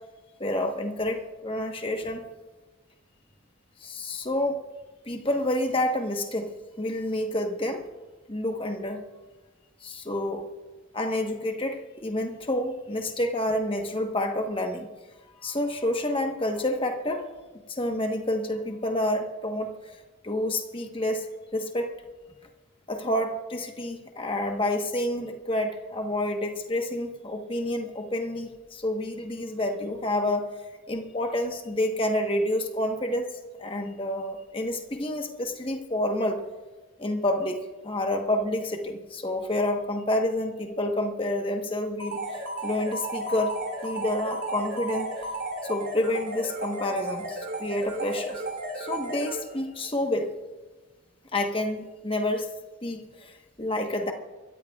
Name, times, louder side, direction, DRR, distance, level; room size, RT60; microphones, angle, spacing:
voice 1, 0.4-2.2 3.8-4.6 5.1-6.5 6.8-7.8 8.3-9.0 9.8-10.5 10.9-14.9 15.4-17.2 17.7-21.9 22.9-30.4 30.9-33.3 33.6-36.4 37.0-43.5 43.8-45.1 45.6-48.4 48.8-50.3 51.3-52.5 52.8-54.1, left 1 dB, 25° left, 4 dB, 1.2 m, -29 dB
sound 1, 42.0-49.8, right 1 dB, 55° right, 3.0 m, -34 dB
23.5 x 14.0 x 2.4 m, 1.2 s
head